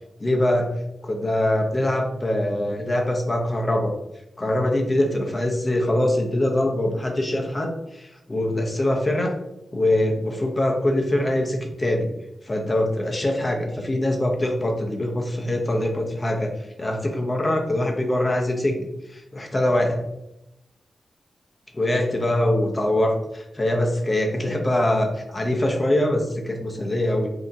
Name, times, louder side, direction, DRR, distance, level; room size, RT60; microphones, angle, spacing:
voice 1, 0.2-0.7 1.0-3.9 4.4-9.3 9.7-12.1 12.4-16.5 16.8-18.8 19.1-20.0 21.8-27.3, left 1 dB, 25° left, 2 dB, 0.7 m, -23 dB
5.3 x 2.8 x 2.6 m, 0.87 s
wide cardioid pair, 110°, 0 cm